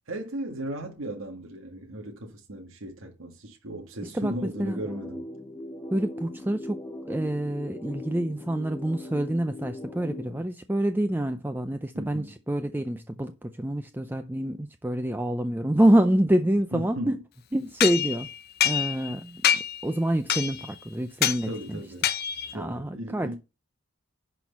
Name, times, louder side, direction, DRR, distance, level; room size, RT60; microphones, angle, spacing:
voice 1, 0.1-5.3 11.9-12.4 16.7-17.2 21.4-22.1 22.5-23.4, right 1 dB, 65° right, 1.8 m, -36 dB
voice 2, 4.1-4.8 5.9-6.8 7.1-17.2 17.5-18.3 18.6-21.5 22.5-23.3, right 1 dB, 10° right, 0.4 m, -26 dB
sound 1, 4.4-10.4, left 1 dB, 15° left, 0.9 m, -39 dB
sound 2, 17.8-19.1 19.4-19.8 20.3-20.7 21.2-21.4 22.0-22.5, left 10 dB, 45° left, 0.6 m, -26 dB
10.5 x 4.4 x 5.6 m
head